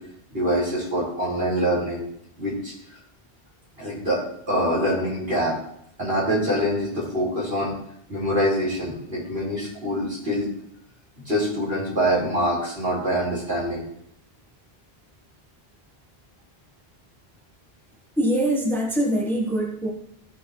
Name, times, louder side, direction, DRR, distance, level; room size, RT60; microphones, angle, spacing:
voice 1, 0.3-2.0 2.4-2.7 3.8-5.6 6.0-7.7 8.1-10.5 11.2-13.8, equal, 70° right, -7 dB, 4.8 m, -25 dB
voice 2, 18.2-19.9, right 1 dB, ahead, -1 dB, 1.3 m, -23 dB
14.5 x 6.5 x 3.2 m, 0.72 s
omnidirectional pair, 1.0 m